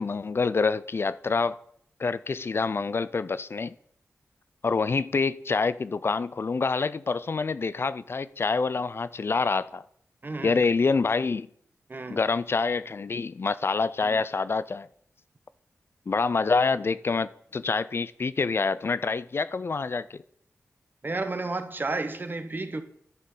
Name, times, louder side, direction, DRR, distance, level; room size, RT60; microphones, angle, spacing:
voice 1, 0.0-1.6 2.0-3.8 4.6-9.8 10.4-11.5 12.1-14.9 16.1-20.2, left 4 dB, 50° left, 0.3 m, -26 dB
voice 2, 10.2-10.6 11.9-12.2 14.0-14.2 21.0-22.8, right 3 dB, 40° right, 0.9 m, -32 dB
10.5 x 4.4 x 5.4 m
cardioid pair, 45°, 5 cm